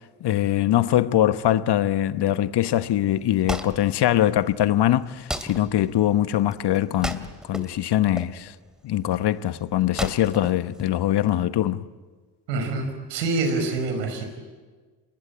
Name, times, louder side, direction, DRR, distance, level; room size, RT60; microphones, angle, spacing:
voice 1, 0.2-8.5 8.8-11.9, left 12 dB, 55° left, 1.2 m, -22 dB
Wood, 3.1-11.4, equal, ahead, 2.8 m, -36 dB
voice 2, 12.5-14.2, right 3 dB, 85° right, 5.4 m, -26 dB
29.0 x 21.5 x 8.9 m
hypercardioid pair, 50°, 50 cm